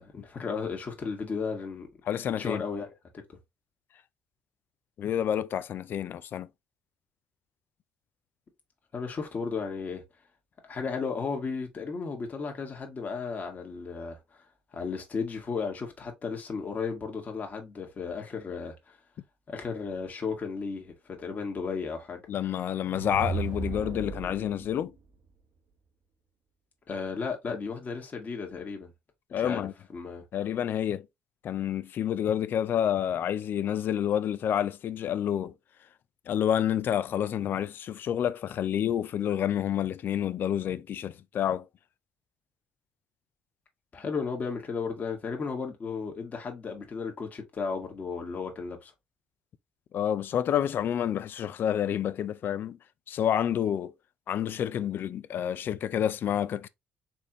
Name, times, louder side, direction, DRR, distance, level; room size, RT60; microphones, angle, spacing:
voice 1, 0.0-1.9 2.4-2.9 8.9-10.0 10.6-14.4 14.7-19.0 19.5-22.2 26.9-28.9 29.3-29.6 29.9-30.2 43.9-48.9, left 5 dB, 40° left, 1.6 m, -34 dB
voice 2, 2.1-2.6 5.0-6.5 22.3-24.9 29.3-29.7 30.3-31.1 31.4-35.5 36.3-41.7 49.9-52.8 53.1-53.9 54.3-56.7, left 10 dB, 55° left, 0.5 m, -29 dB
sound 1, 22.7-24.7, right 4 dB, 55° right, 1.2 m, -35 dB
4.4 x 3.5 x 3.0 m
supercardioid pair, 70°, 4 cm